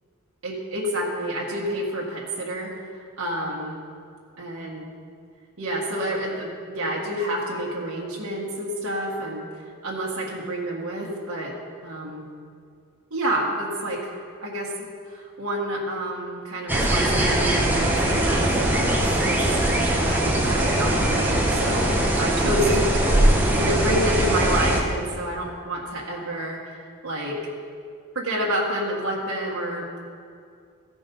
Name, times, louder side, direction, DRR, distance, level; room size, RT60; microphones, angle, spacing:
voice 1, 0.4-2.7 3.2-3.8 4.4-4.9 5.6-9.5 9.8-11.5 11.8-12.3 13.1-14.1 14.4-14.7 15.1-19.5 19.7-23.2 23.5-26.7 27.0-27.4 28.1-30.0, right 1 dB, 85° right, -4 dB, 1.6 m, -29 dB
sound 1, 16.7-24.8, right 1 dB, 10° right, 1.1 m, -21 dB
15.0 x 5.3 x 5.4 m, 2.2 s
head